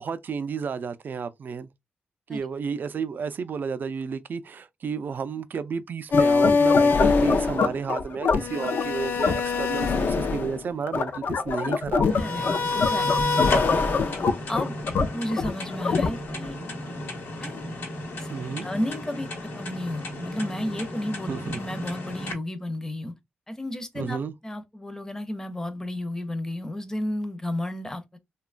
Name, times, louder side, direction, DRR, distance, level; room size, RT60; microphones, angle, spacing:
voice 1, 0.0-1.7 2.3-12.2 18.3-18.7 21.3-21.6 24.0-24.3, right 6 dB, 55° right, 0.4 m, -32 dB
sound 1, 6.1-16.5, left 4 dB, 65° left, 0.4 m, -23 dB
sound 2, 12.0-22.3, left 1 dB, 80° left, 1.0 m, -34 dB
voice 2, 12.2-12.5 12.7-13.4 13.8-14.1 14.5-14.8 15.1-16.6 17.4-17.6 18.2-18.3 18.6-23.1 23.5-24.2 24.4-28.2, left 1 dB, 15° left, 0.6 m, -32 dB
2.9 x 2.2 x 2.4 m
cardioid pair, 90°, 4 cm